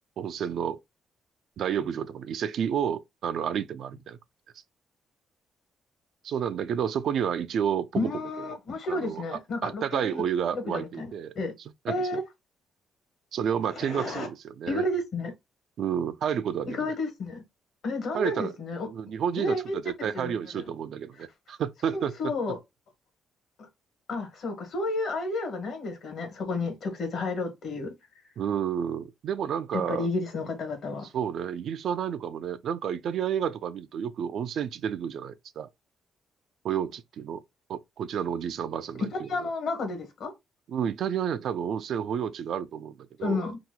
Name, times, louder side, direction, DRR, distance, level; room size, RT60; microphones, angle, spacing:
voice 1, 0.2-0.8 1.6-4.2 6.2-8.1 8.9-11.3 11.8-12.2 13.3-14.9 15.8-16.9 18.1-18.5 18.9-22.3 28.4-30.1 31.1-35.7 36.6-37.4 37.7-39.5 40.7-43.4, right 8 dB, 70° right, 0.3 m, -30 dB
voice 2, 7.9-10.2 10.5-11.5 11.9-12.2 13.7-14.3 14.6-15.3 16.7-17.4 17.8-18.9 19.4-19.8 20.1-20.4 21.9-22.6 24.1-27.9 29.7-31.1 39.1-40.3 43.2-43.6, left 2 dB, 65° left, 1.3 m, -31 dB
2.9 x 2.1 x 3.7 m
cardioid pair, 90°, 0 cm